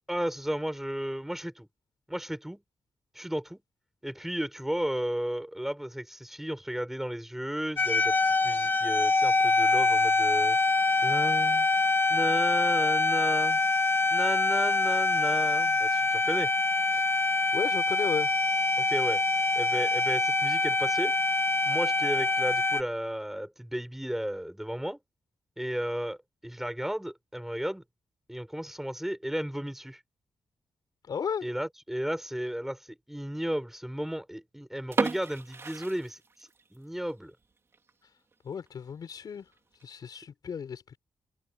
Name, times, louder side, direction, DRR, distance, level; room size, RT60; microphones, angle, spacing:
voice 1, 0.1-1.7 2.1-2.6 3.1-3.6 4.0-8.2 8.4-10.6 11.0-11.7 12.1-13.6 14.1-16.5 18.8-19.2 19.5-21.2 21.7-25.0 25.6-26.2 26.4-27.8 28.3-30.0 31.4-36.2 36.7-37.3, equal, 5° right, 5.8 m, -34 dB
sound 1, 7.8-22.8, left 3 dB, 25° left, 1.6 m, -25 dB
voice 2, 17.5-18.3 31.0-31.5 38.4-39.5 39.8-41.0, left 7 dB, 50° left, 5.5 m, -34 dB
sound 2, 34.8-36.8 37.1-37.2 37.7-37.9 38.3-38.4 38.7-38.8 39.5-39.8, right 4 dB, 30° right, 3.1 m, -33 dB
wide cardioid pair, 175°, 8 cm